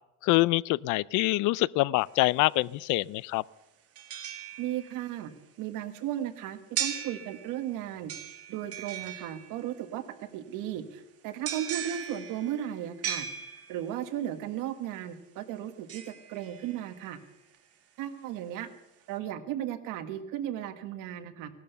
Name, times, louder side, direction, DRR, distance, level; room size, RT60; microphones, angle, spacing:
voice 1, 0.2-3.4, left 20 dB, 70° left, 23 dB, 0.4 m, -25 dB
sound 1, 2.0-2.1 3.9-5.1 6.7-7.7 8.1-9.8 11.4-14.0 15.9-17.1 17.5-17.6, right 9 dB, 50° right, 1.8 m, -38 dB
voice 2, 4.6-5.3 5.6-8.1 8.5-13.3 13.7-17.2 18.0-18.7 19.1-21.5, right 11 dB, 80° right, 9 dB, 1.6 m, -35 dB
17.5 x 12.0 x 6.8 m, 0.94 s
cardioid pair, 175°, 31 cm